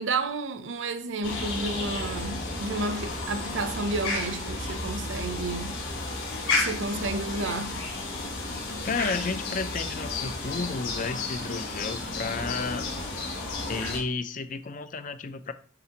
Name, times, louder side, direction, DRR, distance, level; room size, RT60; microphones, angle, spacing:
voice 1, 0.0-5.8 6.5-7.8, right 3 dB, 65° right, 0.6 m, -31 dB
sound 1, 1.2-14.0, left 2 dB, 70° left, 2.8 m, -32 dB
voice 2, 8.8-12.9 13.7-15.5, left 4 dB, 40° left, 0.4 m, -32 dB
9.9 x 4.0 x 2.9 m
head